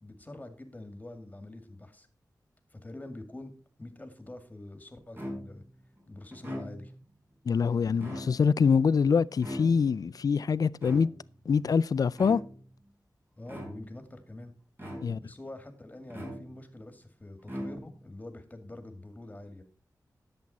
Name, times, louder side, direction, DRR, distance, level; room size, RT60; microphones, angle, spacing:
voice 1, 0.0-2.1 2.7-3.5 3.8-5.6 6.1-6.9 13.4-14.5 15.2-19.6, left 1 dB, 25° left, 2.1 m, -45 dB
sound 1, 5.2-5.7 6.3-7.1 7.9-8.7 9.4-10.1 10.8-11.4 12.1-12.7 13.5-14.1 14.8-15.4 16.1-16.8 17.4-18.1, equal, 30° right, 4.8 m, -41 dB
voice 2, 7.5-11.1 11.5-12.4 15.0-15.2, left 6 dB, 65° left, 0.4 m, -25 dB
11.0 x 7.8 x 4.1 m
wide cardioid pair, 75°, 7 cm